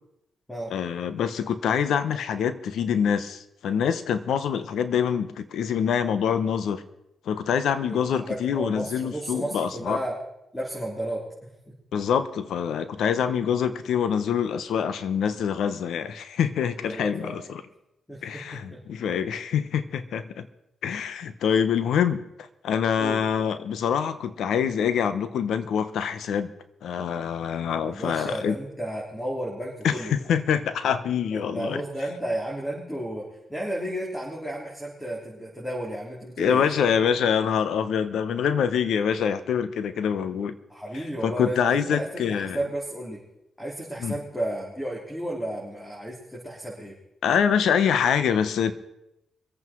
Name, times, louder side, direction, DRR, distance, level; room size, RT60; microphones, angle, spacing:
voice 1, 0.7-6.8 7.3-10.0 11.9-17.6 18.2-20.5 20.8-22.2 22.6-26.5 26.8-28.6 29.8-31.8 36.4-40.5 41.2-42.6 44.0-44.2 47.2-48.7, left 7 dB, 80° left, 12 dB, 1.1 m, -25 dB
voice 2, 7.9-10.2 10.5-11.2 16.8-17.5 18.1-18.4 18.7-18.8 23.0-23.2 27.8-30.1 31.3-37.0 40.7-43.2 43.6-46.9, right 1 dB, 10° left, -4 dB, 4.1 m, -33 dB
23.5 x 8.6 x 4.7 m, 0.86 s
cardioid pair, 65°, 0 cm